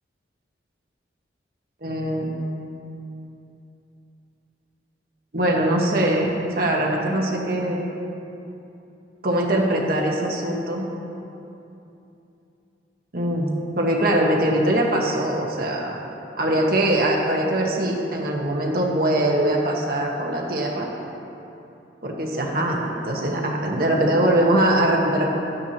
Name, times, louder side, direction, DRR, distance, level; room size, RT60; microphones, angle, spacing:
voice 1, 1.8-2.3 5.3-7.8 9.2-10.9 13.1-13.5 13.8-16.0 16.4-20.9 22.0-25.2, right 1 dB, 55° right, -1 dB, 1.2 m, -22 dB
13.5 x 9.4 x 2.9 m, 2.8 s
head